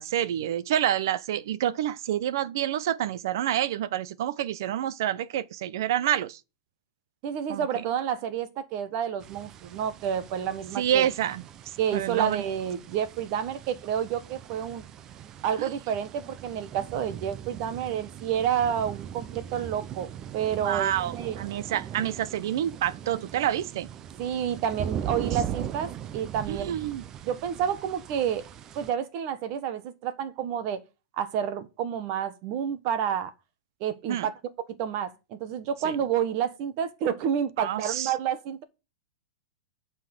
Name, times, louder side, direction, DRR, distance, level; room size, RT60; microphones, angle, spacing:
voice 1, 0.0-6.4 7.5-7.8 10.8-12.4 15.6-15.7 20.6-23.9 26.5-27.0 34.1-34.3 35.8-36.0 37.6-38.1, right 11 dB, 60° right, 0.8 m, -28 dB
voice 2, 7.2-11.1 11.8-14.8 15.4-21.4 24.2-26.7 27.2-28.5 28.7-30.8 31.2-33.3 33.8-34.3 34.8-38.6, right 9 dB, 40° right, 1.4 m, -29 dB
sound 1, 9.2-28.9, right 9 dB, 25° right, 0.6 m, -40 dB
9.3 x 5.6 x 6.7 m
supercardioid pair, 160°, 2 cm